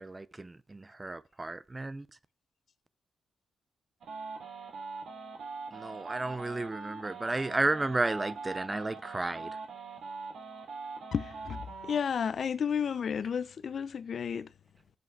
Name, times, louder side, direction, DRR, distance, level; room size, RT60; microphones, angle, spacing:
voice 1, 0.0-2.1 5.7-9.6, right 2 dB, 15° right, 0.5 m, -33 dB
sound 1, 4.0-12.0, right 4 dB, 65° right, 4.7 m, -42 dB
voice 2, 11.1-14.5, left 7 dB, 50° left, 0.6 m, -32 dB
8.1 x 7.8 x 4.7 m
wide cardioid pair, 150°, 0 cm